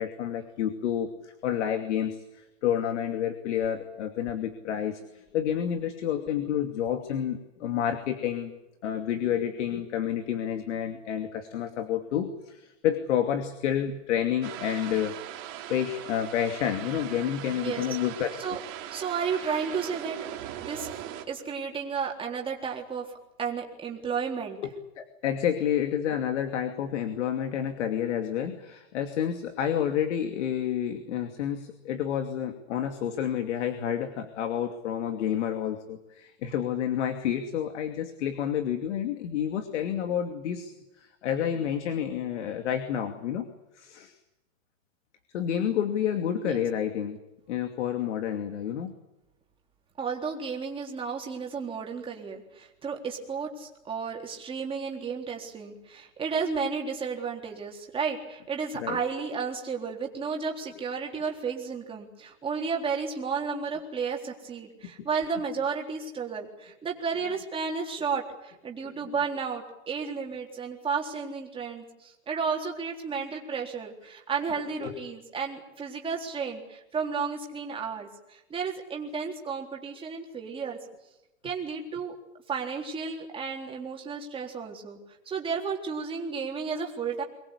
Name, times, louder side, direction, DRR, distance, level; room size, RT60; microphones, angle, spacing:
voice 1, 0.0-8.5 8.8-15.2 15.7-18.6 24.6-43.5 43.7-44.1 45.3-47.2 47.5-48.9 58.8-59.0 64.8-65.1 68.8-68.9 74.8-75.0, left 9 dB, 65° left, 7 dB, 2.6 m, -29 dB
sound 1, 14.4-21.2, right 12 dB, 35° right, 3.6 m, -40 dB
voice 2, 17.6-18.0 18.4-18.6 18.9-20.2 20.6-20.9 21.3-23.1 23.4-24.6 46.4-46.6 50.0-80.8 81.4-82.2 82.5-85.0 85.3-87.2, right 5 dB, 15° right, 0 dB, 3.8 m, -33 dB
24.5 x 21.0 x 8.5 m, 0.94 s
hypercardioid pair, 150°, 39 cm